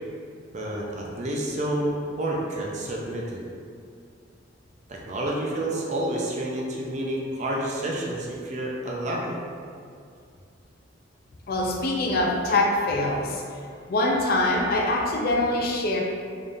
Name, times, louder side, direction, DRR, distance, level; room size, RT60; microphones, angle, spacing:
voice 1, 0.5-3.4 4.9-9.4, right 1 dB, 40° right, -2 dB, 0.5 m, -29 dB
voice 2, 11.5-13.4 13.9-16.0, left 2 dB, 50° left, 0 dB, 0.4 m, -24 dB
3.7 x 3.5 x 2.6 m, 2.2 s
head